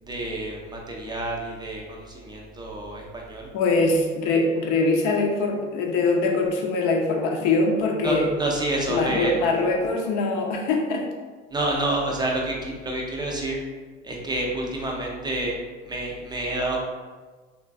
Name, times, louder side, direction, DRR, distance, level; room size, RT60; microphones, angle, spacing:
voice 1, 0.0-3.5 8.0-9.4 11.5-13.6 14.0-16.8, right 1 dB, 10° right, -1 dB, 0.5 m, -28 dB
voice 2, 3.5-8.3 8.9-11.0, left 3 dB, 55° left, 1 dB, 0.7 m, -23 dB
3.1 x 2.4 x 2.3 m, 1.4 s
hypercardioid pair, 80°, 37 cm